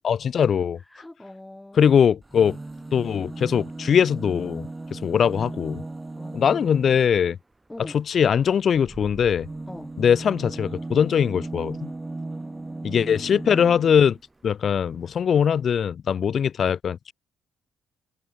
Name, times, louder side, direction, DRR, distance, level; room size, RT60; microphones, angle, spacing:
voice 1, 0.0-0.8 1.8-2.6 2.9-5.8 6.3-7.4 7.9-9.5 10.0-11.9 12.8-14.2 14.4-17.1, left 7 dB, 55° left, 0.3 m, -21 dB
voice 2, 0.8-1.9 6.1-7.1 7.7-8.0 9.7-10.0 12.4-13.2, left 1 dB, 10° left, 7.6 m, -43 dB
sound 1, 2.2-7.1 8.7-14.2 15.2-15.3 15.5-15.6, right 2 dB, 20° right, 1.6 m, -36 dB
cardioid pair, 75°, 0 cm